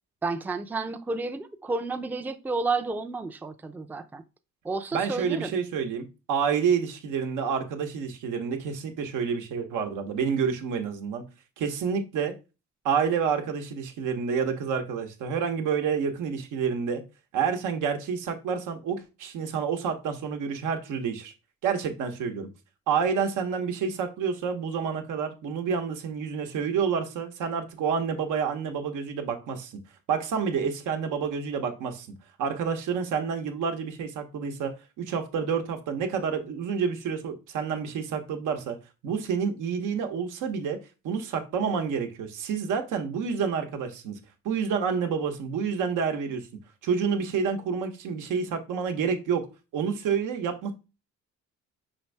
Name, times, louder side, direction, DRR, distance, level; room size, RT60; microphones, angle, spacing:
voice 1, 0.2-4.2 4.6-5.5, right 3 dB, 5° right, 0.4 m, -31 dB
voice 2, 4.9-11.2 11.6-12.3 12.8-17.0 17.3-21.3 21.6-22.5 22.9-29.8 30.1-32.1 32.4-38.8 39.0-40.8 41.0-44.2 44.4-46.5 46.8-49.4 49.7-50.7, right 6 dB, 85° right, 0.9 m, -28 dB
5.6 x 2.6 x 3.2 m
cardioid pair, 90°, 30 cm